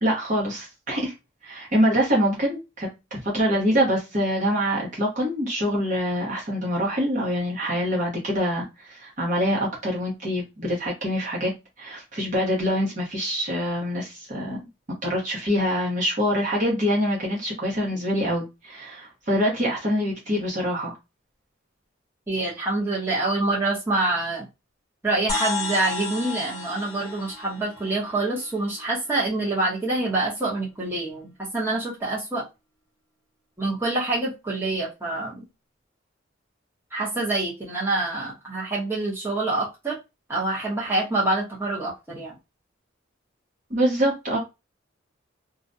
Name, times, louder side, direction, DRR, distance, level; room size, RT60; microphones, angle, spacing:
voice 1, 0.0-1.1 1.4-11.5 11.8-14.7 15.0-20.9 43.7-44.4, equal, 40° right, 1.0 m, -25 dB
voice 2, 22.3-24.4 25.0-32.4 33.6-35.4 36.9-39.9 40.3-42.3, right 2 dB, 10° right, 0.8 m, -26 dB
sound 1, 25.3-29.0, left 4 dB, 15° left, 0.7 m, -33 dB
2.4 x 2.2 x 2.6 m
head